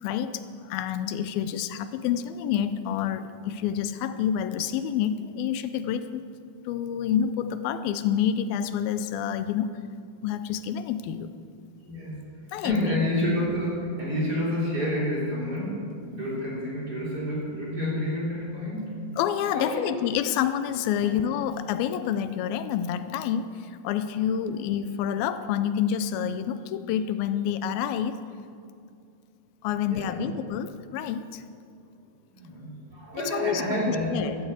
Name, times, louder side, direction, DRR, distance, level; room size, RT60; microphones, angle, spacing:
voice 1, 0.0-6.2 6.7-9.7 10.2-11.4 12.5-12.9 19.2-28.2 29.6-31.4 33.3-33.6 34.1-34.4, left 9 dB, 85° left, 11 dB, 2.5 m, -28 dB
voice 2, 11.8-12.3 12.6-19.0 19.5-19.9 20.9-21.2 24.5-24.6 29.9-30.3 32.3-34.3, equal, 25° right, -5 dB, 4.2 m, -29 dB
13.5 x 13.0 x 8.1 m, 2.4 s
omnidirectional pair, 4.1 m